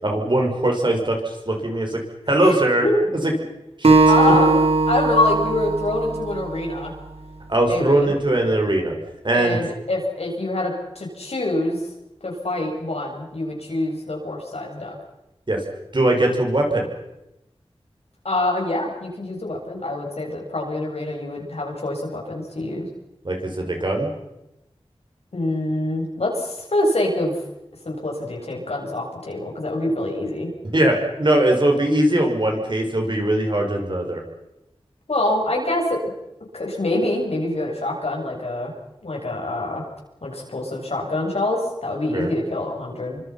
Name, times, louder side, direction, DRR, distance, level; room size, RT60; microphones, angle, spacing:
voice 1, 0.0-2.0 2.3-2.9 3.8-3.9 7.5-8.9 9.2-9.6 15.5-15.6 15.9-16.9 23.2-24.1 30.7-34.2 42.1-42.3, right 1 dB, 45° right, 2 dB, 6.3 m, -20 dB
voice 2, 2.4-3.0 4.1-4.5 4.9-6.9 7.7-8.1 9.3-11.8 12.2-14.9 18.2-22.9 25.3-27.4 27.9-30.5 35.1-36.0 36.5-38.7 39.0-39.8 40.2-43.2, left 1 dB, 75° left, -1 dB, 7.6 m, -25 dB
Acoustic guitar, 3.8-7.1, right 3 dB, 70° right, 3.6 m, -19 dB
29.0 x 25.0 x 6.0 m, 0.91 s
wide cardioid pair, 65°, 11 cm